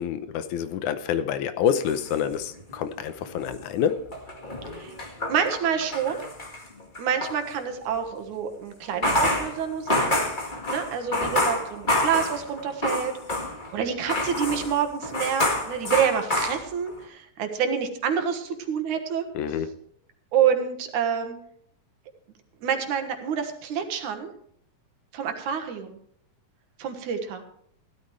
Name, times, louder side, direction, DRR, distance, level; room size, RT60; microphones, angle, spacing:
voice 1, 0.0-4.0 19.4-19.7, left 8 dB, 80° left, 11 dB, 2.3 m, -27 dB
sound 1, 1.7-2.9 3.2-7.4 8.8-13.7 14.1-17.0, left 1 dB, 20° left, 1.3 m, -28 dB
voice 2, 5.3-6.3 7.0-10.2 10.7-13.1 13.7-19.2 20.3-21.4 22.6-24.3 25.1-26.0 26.8-27.4, right 8 dB, 75° right, 6 dB, 2.8 m, -27 dB
15.5 x 12.5 x 3.3 m, 0.68 s
omnidirectional pair, 3.5 m